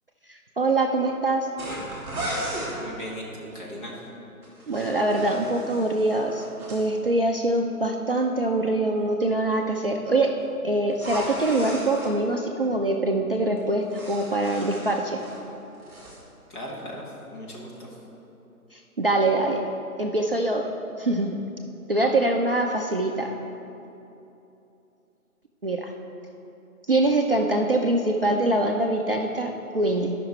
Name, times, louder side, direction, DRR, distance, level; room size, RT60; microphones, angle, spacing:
voice 1, 0.3-1.5 4.7-6.4 6.7-10.4 10.6-15.2 18.7-19.6 20.0-20.7 21.0-21.4 21.9-23.3 25.6-25.9 26.9-30.2, right 2 dB, 40° right, 1 dB, 0.4 m, -24 dB
sound 1, 1.6-2.8 4.4-6.8 10.9-12.1 13.6-15.4 15.7-16.2, right 1 dB, 5° right, 1.6 m, -36 dB
voice 2, 2.8-4.0 16.5-18.0, equal, 35° left, -3 dB, 1.8 m, -38 dB
12.0 x 5.8 x 4.3 m, 2.9 s
figure-of-eight pair, 150°, 45 cm